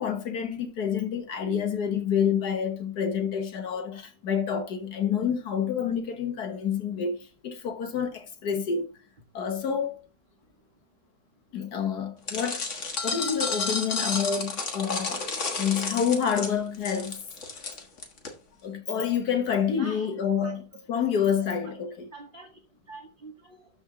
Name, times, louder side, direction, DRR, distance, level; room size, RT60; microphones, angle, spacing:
voice 1, 0.0-8.9 9.3-10.0 11.5-12.7 13.0-15.2 15.6-17.2 18.6-20.6 20.9-22.1, left 7 dB, 70° left, 1.8 m, -28 dB
sound 1, 12.3-18.3, left 4 dB, 45° left, 1.7 m, -31 dB
voice 2, 19.8-20.1 20.4-20.5 21.4-21.8 22.1-22.5 22.9-23.6, right 2 dB, 35° right, 1.1 m, -45 dB
12.5 x 4.4 x 3.7 m
omnidirectional pair, 1.8 m